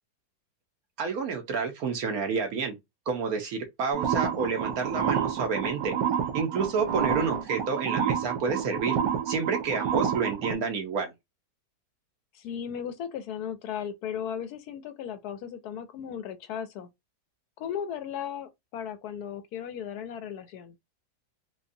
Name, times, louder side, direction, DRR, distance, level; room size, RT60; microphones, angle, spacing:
voice 1, 1.0-2.8 3.1-5.9 6.3-9.0 9.3-11.1, right 5 dB, 60° right, 1.2 m, -29 dB
sound 1, 3.9-10.5, right 8 dB, 80° right, 1.4 m, -29 dB
voice 2, 12.3-16.9 17.6-20.8, left 8 dB, 70° left, 1.0 m, -36 dB
5.0 x 2.3 x 2.6 m
omnidirectional pair, 1.9 m